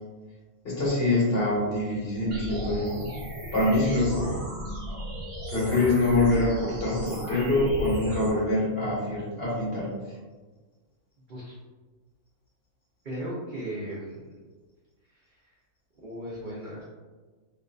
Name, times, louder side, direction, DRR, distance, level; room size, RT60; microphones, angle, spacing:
voice 1, 0.6-3.0 3.5-4.4 5.5-9.9, left 2 dB, 50° left, -7 dB, 1.0 m, -25 dB
sound 1, 2.3-8.3, equal, 50° right, 1.0 m, -35 dB
voice 2, 13.0-14.3 15.3-15.4 16.0-16.8, right 1 dB, 80° right, -6 dB, 0.4 m, -36 dB
2.5 x 2.5 x 2.2 m, 1.4 s
omnidirectional pair, 1.5 m